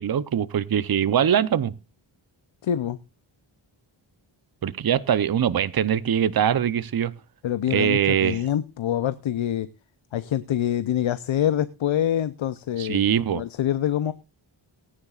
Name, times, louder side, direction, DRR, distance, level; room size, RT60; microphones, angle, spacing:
voice 1, 0.0-1.7 4.6-7.1 7.7-8.4 12.8-13.4, right 9 dB, 50° right, 0.7 m, -22 dB
voice 2, 2.6-3.0 7.4-9.7 10.1-13.1 13.3-14.1, left 10 dB, 75° left, 0.7 m, -25 dB
18.5 x 9.8 x 2.4 m
wide cardioid pair, 75°, 48 cm